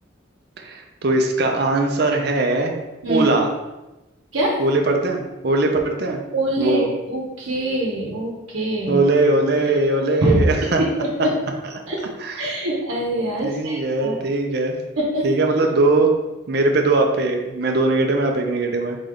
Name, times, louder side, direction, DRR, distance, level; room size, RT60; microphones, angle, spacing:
voice 1, 0.6-2.7 3.1-3.5 4.6-6.2 6.6-6.9 8.9-10.8 12.2-12.6 13.4-14.8 15.2-16.1 16.5-19.0, right 2 dB, 50° right, 3 dB, 0.6 m, -20 dB
voice 2, 6.3-6.8 7.1-9.0 10.2-10.4 11.0-11.3 11.9-12.0 12.4-14.2 15.0-15.3, right 1 dB, 70° right, -4 dB, 1.0 m, -23 dB
4.1 x 3.3 x 3.8 m, 1.0 s
head